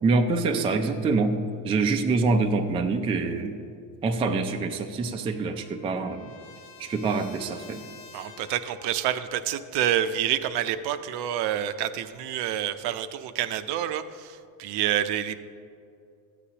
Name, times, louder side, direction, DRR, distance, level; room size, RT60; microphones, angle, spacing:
voice 1, 0.0-1.4 1.6-3.6 4.0-6.3 6.8-7.8, right 3 dB, 15° right, 5 dB, 0.3 m, -25 dB
Trumpet, 4.9-9.0, left 4 dB, 50° left, 0.9 m, -50 dB
voice 2, 8.1-15.4, right 11 dB, 60° right, 11 dB, 0.6 m, -28 dB
13.5 x 8.4 x 2.8 m, 2.5 s
supercardioid pair, 110°, 45 cm